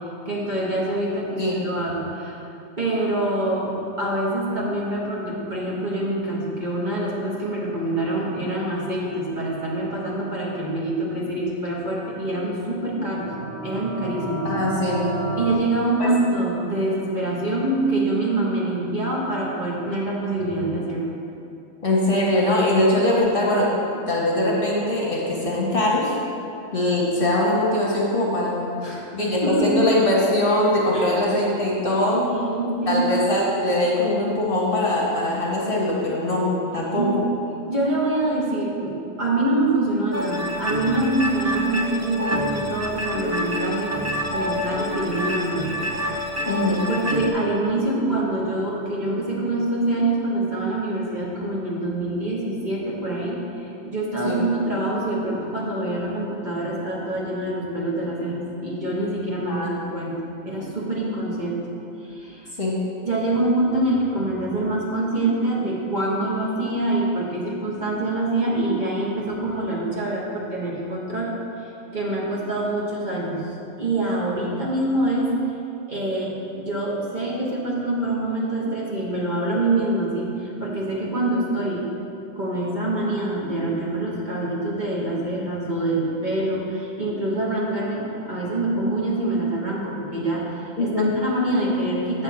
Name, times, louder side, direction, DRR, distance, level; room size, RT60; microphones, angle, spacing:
voice 1, 0.2-2.5 2.8-13.2 13.6-14.5 15.4-21.1 28.8-29.1 29.4-29.8 30.9-31.1 32.1-33.0 37.0-37.3 37.7-43.9 44.3-45.7 46.4-46.5 46.9-60.1 60.4-61.7 62.0-62.5 63.0-71.3 71.9-73.5 73.8-75.3 75.9-81.9 82.3-90.5 90.8-92.2, right 2 dB, 35° right, -5 dB, 1.5 m, -25 dB
sound 1, 13.0-15.5, right 2 dB, 60° right, 1.6 m, -30 dB
voice 2, 14.4-15.1 16.0-16.1 21.8-23.7 24.1-26.1 26.7-28.7 29.1-32.2 32.9-37.3 46.5-46.9 54.2-54.4 59.5-59.7 62.6-62.7 90.8-91.1, left 1 dB, 45° left, -5 dB, 1.5 m, -22 dB
sound 2, 40.1-47.3, equal, 20° right, 0.5 m, -27 dB
7.8 x 4.6 x 7.1 m, 2.7 s
omnidirectional pair, 1.3 m